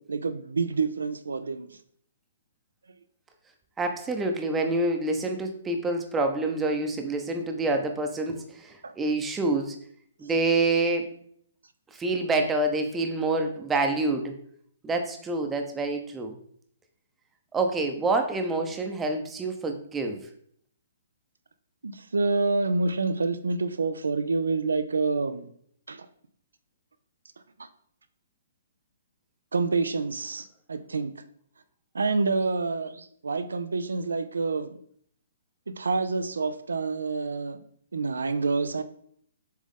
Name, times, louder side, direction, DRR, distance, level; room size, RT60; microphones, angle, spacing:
voice 1, 0.0-1.7 8.8-8.9 21.8-25.5 25.9-26.1 29.5-31.1 31.9-34.8 35.8-37.6 37.9-38.8, right 3 dB, 75° right, 11 dB, 0.6 m, -27 dB
voice 2, 3.8-9.8 10.2-11.1 11.9-14.3 14.8-16.3 17.5-20.2, right 2 dB, 10° right, 4 dB, 0.9 m, -27 dB
7.5 x 3.6 x 3.7 m, 0.64 s
figure-of-eight pair, 125°, 0 cm